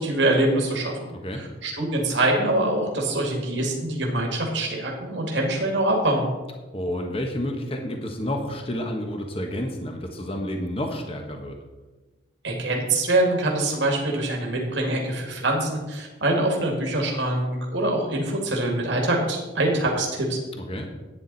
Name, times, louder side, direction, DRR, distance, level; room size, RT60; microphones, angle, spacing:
voice 1, 0.0-6.3 12.4-20.4, right 1 dB, 65° right, 0 dB, 2.1 m, -24 dB
voice 2, 1.1-1.4 6.7-11.6 20.6-20.9, left 1 dB, 30° left, 3 dB, 1.3 m, -30 dB
12.0 x 9.3 x 4.1 m, 1.2 s
head